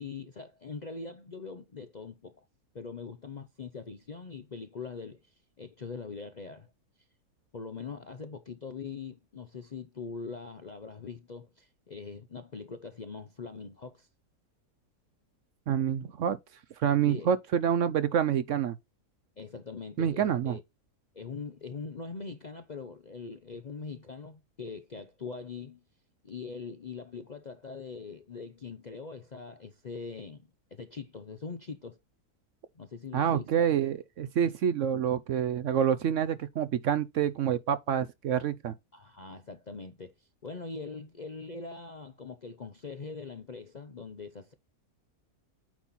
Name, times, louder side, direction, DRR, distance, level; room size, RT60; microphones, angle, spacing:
voice 1, 0.0-2.5 2.7-6.7 7.5-14.1 17.1-17.3 19.4-20.6 21.1-25.8 26.2-32.0 32.7-33.7 34.4-34.5 38.9-44.5, left 4 dB, 45° left, 0.5 m, -42 dB
voice 2, 15.7-16.4 16.8-18.8 20.0-20.6 33.1-38.7, right 9 dB, 65° right, 0.9 m, -27 dB
9.1 x 4.2 x 4.0 m
omnidirectional pair, 1.6 m